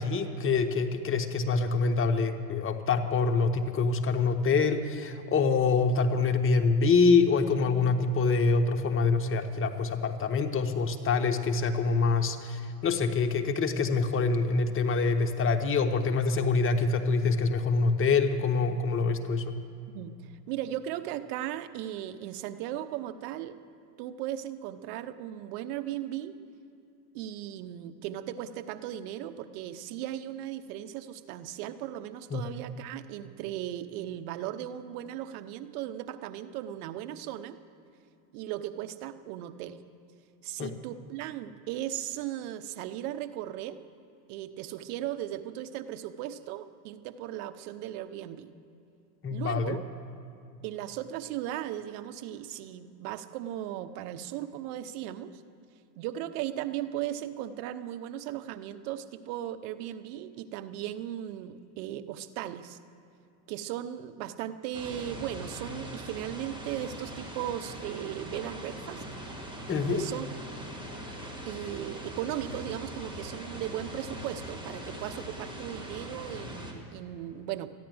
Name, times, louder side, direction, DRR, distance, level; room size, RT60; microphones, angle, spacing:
voice 1, 0.0-19.6 32.3-32.4 40.6-40.7 49.2-49.8 69.7-70.1, left 4 dB, 25° left, 6 dB, 1.0 m, -25 dB
voice 2, 19.9-23.5 24.0-26.4 27.1-37.6 38.3-39.8 40.4-43.8 44.3-48.5 49.3-49.8 50.6-55.4 56.0-62.8 63.5-69.0 69.9-70.3 71.4-77.7, right 12 dB, 60° right, 10 dB, 0.9 m, -37 dB
sound 1, 64.7-76.7, equal, 10° right, 2.0 m, -41 dB
13.5 x 10.0 x 7.8 m, 2.7 s
hypercardioid pair, 100°, 50 cm